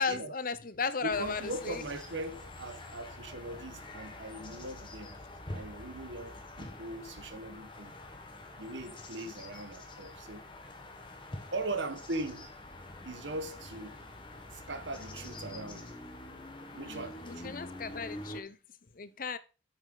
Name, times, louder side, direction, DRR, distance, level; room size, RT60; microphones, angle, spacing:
voice 1, 0.0-1.8 16.9-18.6 18.9-19.4, left 5 dB, 45° left, 0.7 m, -35 dB
voice 2, 1.0-5.2 5.5-7.9 8.6-10.4 11.5-12.5 13.0-14.0 14.5-15.9 16.7-17.5, right 2 dB, 70° right, 1.3 m, -40 dB
sound 1, 1.1-18.4, left 1 dB, 25° left, 1.3 m, -46 dB
8.5 x 6.9 x 3.9 m
head